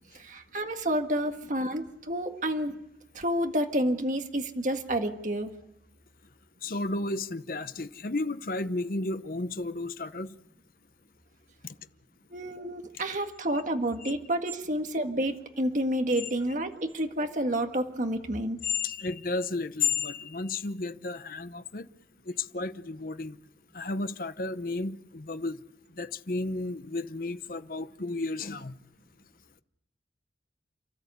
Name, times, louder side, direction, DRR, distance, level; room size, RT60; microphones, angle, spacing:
voice 1, 0.1-2.8 3.1-5.5 12.3-18.6, right 1 dB, 45° right, 1.8 m, -29 dB
voice 2, 6.6-10.3 14.0-14.1 16.2-16.3 18.6-21.9 22.3-23.4 23.7-25.6 26.0-28.8, left 3 dB, 50° left, 0.8 m, -32 dB
29.5 x 13.5 x 8.2 m
head